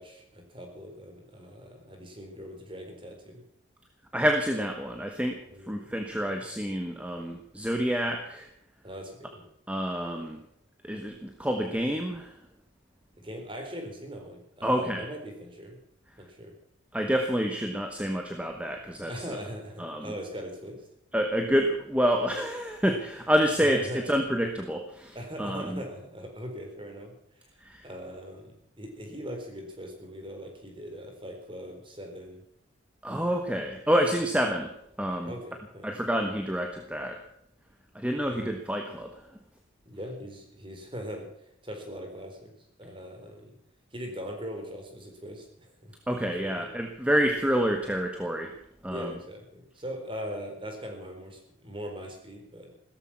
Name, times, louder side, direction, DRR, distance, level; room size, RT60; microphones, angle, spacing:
voice 1, 0.0-3.4 5.4-6.0 6.3-6.5 8.8-9.4 13.2-15.8 16.2-16.5 19.1-20.9 23.6-24.0 25.1-27.5 27.8-32.4 35.3-36.0 38.3-38.6 39.9-41.3 41.6-42.5 42.8-43.5 43.9-45.9 46.4-46.7 48.8-52.7, equal, 25° right, 3 dB, 4.2 m, -41 dB
voice 2, 4.1-5.4 5.7-8.5 9.7-10.4 10.8-12.3 14.6-15.0 16.9-19.1 19.8-20.0 21.1-25.8 27.6-27.8 33.0-34.7 35.0-35.3 35.8-37.2 37.9-39.1 46.1-48.5 48.8-49.1, equal, 5° right, 4 dB, 1.4 m, -28 dB
16.5 x 14.0 x 5.8 m, 0.73 s
head